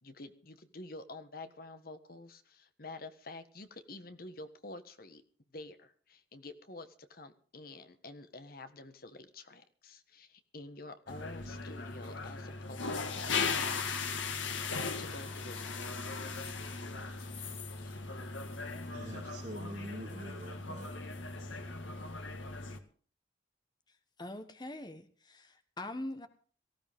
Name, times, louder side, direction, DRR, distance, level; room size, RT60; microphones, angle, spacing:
voice 1, 0.0-5.2 5.5-14.0 15.0-16.6 17.2-17.4 17.7-18.1, left 2 dB, 50° left, 10 dB, 1.5 m, -49 dB
sound 1, 11.1-22.8, left 4 dB, 90° left, 2.0 m, -38 dB
voice 2, 18.9-20.9, right 1 dB, 45° right, -1 dB, 2.7 m, -45 dB
voice 3, 24.2-26.3, left 1 dB, 20° left, 9 dB, 1.2 m, -43 dB
18.5 x 15.5 x 3.6 m, 0.43 s
head